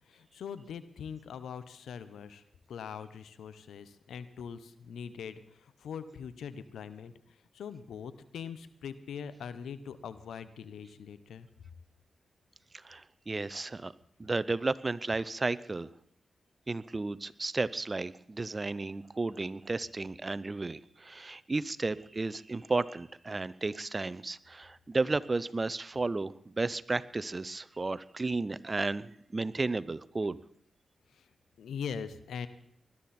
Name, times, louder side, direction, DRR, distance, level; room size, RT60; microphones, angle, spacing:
voice 1, 0.1-2.4 2.7-7.1 7.5-11.5 31.6-32.5, left 7 dB, 85° left, 14 dB, 0.9 m, -42 dB
voice 2, 12.7-13.9 14.2-15.9 16.7-30.4, right 3 dB, 40° right, 18 dB, 0.7 m, -33 dB
20.5 x 12.0 x 4.3 m, 0.69 s
supercardioid pair, 45°, 0 cm